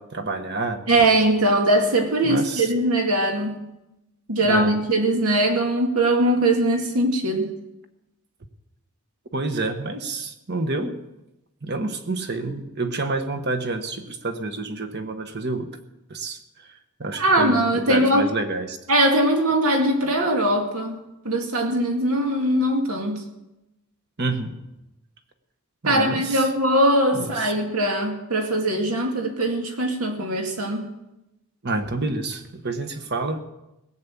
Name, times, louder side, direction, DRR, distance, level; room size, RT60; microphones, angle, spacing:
voice 1, 0.0-0.8 2.2-2.7 4.4-4.8 9.3-10.9 11.6-15.8 16.1-18.8 24.2-24.6 25.8-26.5 27.1-27.5 31.6-33.4, right 2 dB, 50° right, 7 dB, 1.3 m, -28 dB
voice 2, 0.9-3.6 4.3-7.5 17.2-18.3 18.9-23.2 25.9-30.9, right 1 dB, 80° right, 3 dB, 2.2 m, -21 dB
18.0 x 8.3 x 7.3 m, 0.93 s
head